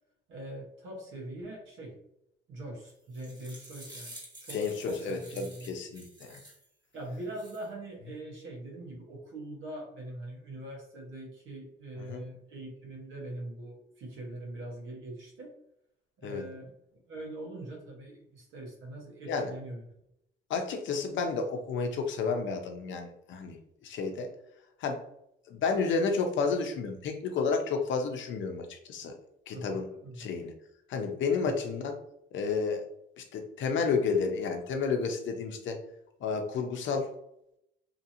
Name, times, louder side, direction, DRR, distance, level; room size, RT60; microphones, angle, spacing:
voice 1, 0.3-2.0 2.5-5.7 6.9-15.5 16.2-16.7 17.1-19.8 29.5-30.3 31.4-31.5, right 1 dB, 80° right, -1 dB, 1.1 m, -42 dB
sound 1, 2.9-6.7 7.1-7.7, right 1 dB, 20° right, 1.3 m, -49 dB
voice 2, 4.5-6.4 12.0-12.2 16.2-16.4 19.3-19.5 20.5-23.6 23.8-24.3 24.8-25.0 25.5-29.1 29.5-29.9 30.2-30.5 30.9-31.9 32.3-32.8 33.2-35.8 36.2-37.1, left 5 dB, 70° left, 4 dB, 0.6 m, -31 dB
2.8 x 2.8 x 2.6 m, 0.78 s
cardioid pair, 90°, 20 cm